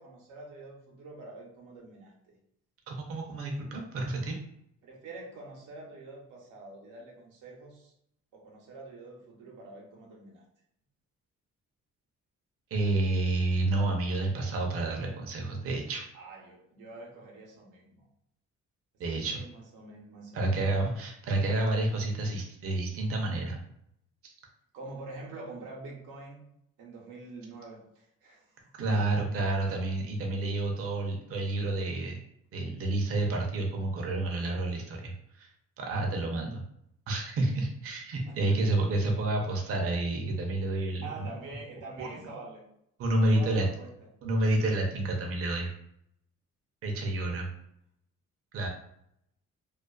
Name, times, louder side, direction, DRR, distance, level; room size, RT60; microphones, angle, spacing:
voice 1, 0.0-2.4 4.8-7.9 8.3-10.4 16.1-18.1 19.1-20.8 24.7-26.4 26.8-29.2 29.7-29.8 38.2-38.7 41.0-42.6 43.3-43.9 47.2-47.3, right 2 dB, 90° right, -2 dB, 0.8 m, -46 dB
voice 2, 2.9-4.4 12.7-16.0 19.0-19.4 20.3-23.6 24.2-24.3 28.8-32.2 32.5-35.5 35.8-36.6 37.1-41.3 42.0-42.1 43.0-43.6 44.2-45.7 46.8-47.5 48.5-48.7, right 2 dB, 50° right, 0 dB, 0.6 m, -29 dB
2.3 x 2.3 x 2.3 m, 0.74 s
cardioid pair, 90°, 30 cm